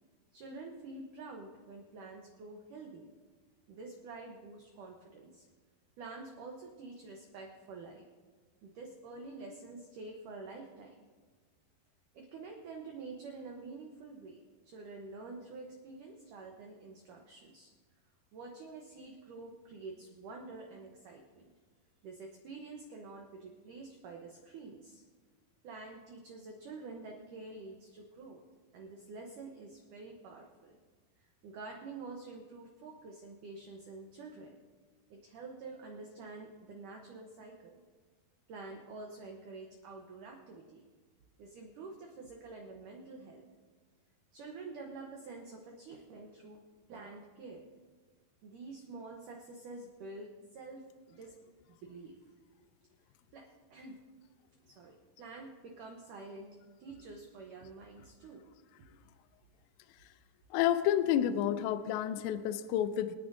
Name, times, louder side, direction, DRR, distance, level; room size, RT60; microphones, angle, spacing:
voice 1, 0.3-3.1 3.7-5.5 6.0-8.1 8.6-11.1 12.1-17.7 18.3-21.5 22.0-25.0 25.6-28.4 28.7-30.8 31.2-34.6 35.1-37.8 38.5-40.8 41.4-43.4 44.3-47.7 48.4-51.3 51.8-52.2 53.3-54.0 54.7-58.5, right 3 dB, 90° right, 1 dB, 1.8 m, -48 dB
voice 2, 60.5-63.2, left 11 dB, 80° left, 11 dB, 2.7 m, -30 dB
26.0 x 9.5 x 2.7 m, 1.4 s
omnidirectional pair, 5.3 m